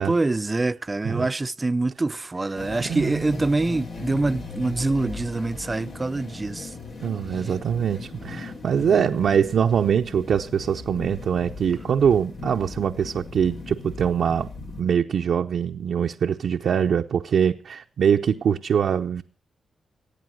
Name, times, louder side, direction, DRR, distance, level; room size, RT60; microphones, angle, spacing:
voice 1, 0.0-6.7, right 2 dB, 30° right, 0.6 m, -25 dB
sound 1, 2.6-14.8, left 3 dB, 75° left, 3.9 m, -38 dB
voice 2, 2.9-3.3 7.0-14.5 14.8-19.2, right 7 dB, 75° right, 0.7 m, -23 dB
17.0 x 8.8 x 6.3 m
supercardioid pair, 45°, 0 cm